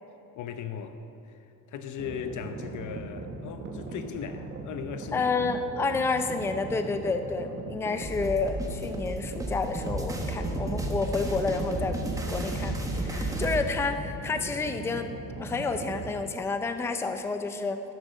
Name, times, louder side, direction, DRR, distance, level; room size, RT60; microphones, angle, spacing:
voice 1, 0.3-1.0 1.3-1.4 1.7-5.4, left 7 dB, 55° left, 9 dB, 0.9 m, -38 dB
sound 1, 2.0-16.1, right 3 dB, 30° right, 1.4 m, -40 dB
voice 2, 5.1-12.0 12.3-15.1 15.4-17.8, left 4 dB, 5° left, 7 dB, 0.4 m, -30 dB
sound 2, 8.0-13.6, right 1 dB, 10° right, 1.2 m, -32 dB
12.0 x 10.5 x 6.4 m, 2.8 s
cardioid pair, 160°, 37 cm